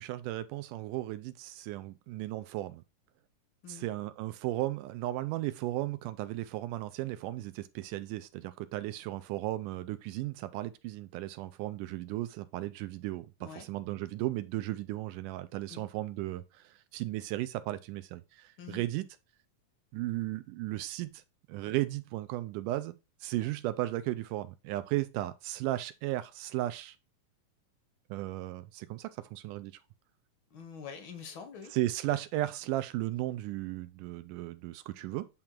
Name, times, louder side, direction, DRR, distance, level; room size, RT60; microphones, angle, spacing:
voice 1, 0.0-2.8 3.7-19.1 19.9-21.2 21.5-23.0 23.2-27.0 28.1-29.7 31.7-35.3, right 16 dB, 80° right, 2.0 m, -35 dB
voice 2, 30.5-31.7, left 6 dB, 80° left, 1.1 m, -45 dB
8.8 x 3.8 x 4.4 m
omnidirectional pair, 3.9 m